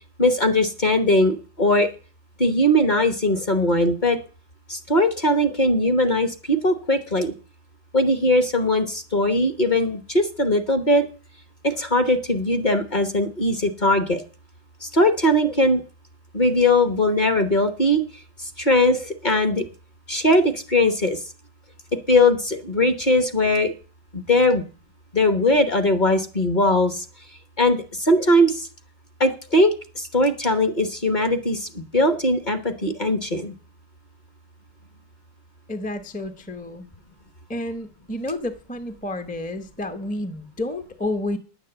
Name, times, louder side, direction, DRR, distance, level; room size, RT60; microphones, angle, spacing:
voice 1, 0.2-1.9 2.4-4.2 4.7-7.3 7.9-11.1 11.6-14.2 14.8-15.8 16.3-18.0 18.6-19.6 20.1-21.2 22.1-23.7 24.1-24.6 25.1-27.0 27.6-28.7 29.2-33.5, left 1 dB, 30° left, 8 dB, 1.0 m, -20 dB
voice 2, 35.7-36.8 37.5-41.4, left 1 dB, 10° left, 8 dB, 0.6 m, -30 dB
10.0 x 8.2 x 7.9 m, 0.38 s
omnidirectional pair, 1.9 m